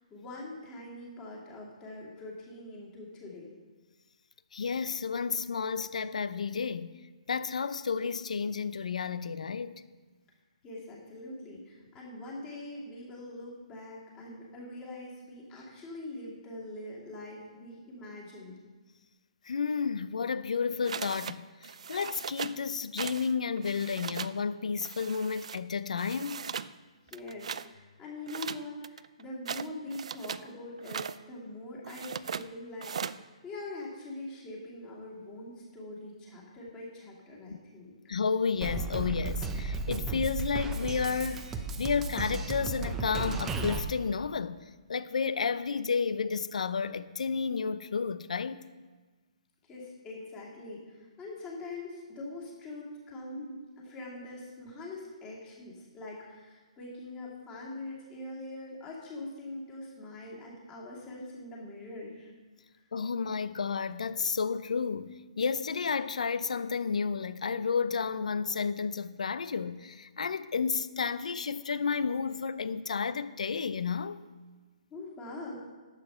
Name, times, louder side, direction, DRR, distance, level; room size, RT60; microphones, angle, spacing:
voice 1, 0.1-3.5 10.6-18.6 27.1-38.0 49.7-62.3 74.9-75.6, left 2 dB, 15° left, 2.6 m, -43 dB
voice 2, 4.5-7.0 7.3-9.8 19.4-26.5 38.1-48.6 62.9-74.2, left 5 dB, 80° left, 0.6 m, -31 dB
sound 1, 20.9-21.4 21.6-22.6 23.0-23.3 23.6-24.4 24.8-25.6 26.0-26.7 27.1-27.7 28.3-30.5 30.8-31.2 31.8-32.5 32.8-33.2, right 7 dB, 65° right, 0.4 m, -39 dB
Drum kit, 38.6-43.8, right 3 dB, 10° right, 0.6 m, -34 dB
11.0 x 8.1 x 5.7 m
hypercardioid pair, 160°, 4 cm